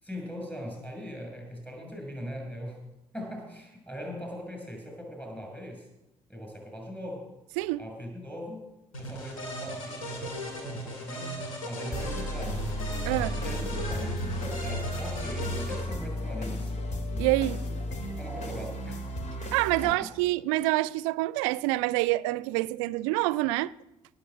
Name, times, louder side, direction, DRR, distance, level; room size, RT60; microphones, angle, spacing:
voice 1, 0.0-2.8 3.1-5.9 6.3-7.3 7.8-8.6 9.0-12.6 13.4-16.7 18.1-19.1 19.8-20.1, equal, 10° left, 6.9 m, -40 dB
sound 1, 8.9-15.8, equal, 80° left, 2.3 m, -36 dB
sound 2, 11.9-19.9, left 1 dB, 45° left, 2.8 m, -34 dB
voice 2, 13.1-13.4 17.2-17.6 19.5-23.7, right 19 dB, 65° right, 0.4 m, -27 dB
17.5 x 7.2 x 7.7 m
figure-of-eight pair, 45°, 17 cm